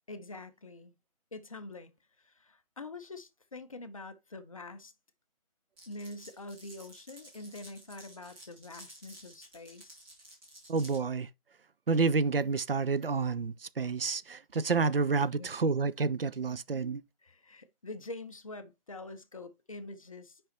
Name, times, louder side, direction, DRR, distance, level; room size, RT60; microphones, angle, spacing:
voice 1, 0.1-0.9 1.3-4.9 5.9-10.0 15.2-15.5 17.2-20.4, left 2 dB, 35° left, 0.6 m, -45 dB
Glass, 5.8-11.0, right 1 dB, 5° right, 1.2 m, -53 dB
voice 2, 10.7-11.3 11.9-17.0, right 4 dB, 75° right, 0.6 m, -29 dB
5.5 x 5.2 x 4.2 m
figure-of-eight pair, 155°, 29 cm